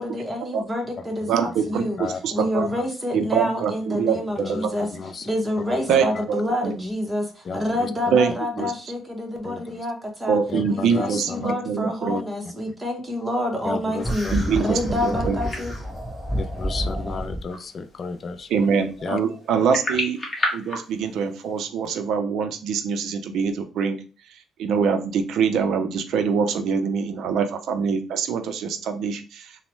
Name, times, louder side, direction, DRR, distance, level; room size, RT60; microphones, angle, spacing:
voice 1, 0.0-2.0 2.3-4.9 5.2-10.4 10.7-15.8 16.8-17.3, left 1 dB, 10° right, 0.8 m, -28 dB
voice 2, 1.3-1.8 2.2-2.7 3.1-4.7 5.9-6.7 8.1-8.3 8.6-8.7 10.3-12.2 14.3-15.4 18.5-20.2 20.5-24.0 24.6-29.6, right 6 dB, 70° right, 0.4 m, -24 dB
voice 3, 10.5-11.5 12.1-12.2 13.6-14.7 16.4-18.5 19.0-19.2, left 4 dB, 40° left, 0.3 m, -32 dB
sound 1, 14.0-17.4, equal, 5° left, 1.4 m, -29 dB
sound 2, 15.4-21.6, left 1 dB, 25° left, 0.9 m, -33 dB
3.1 x 2.0 x 3.0 m
cardioid pair, 115°, 0 cm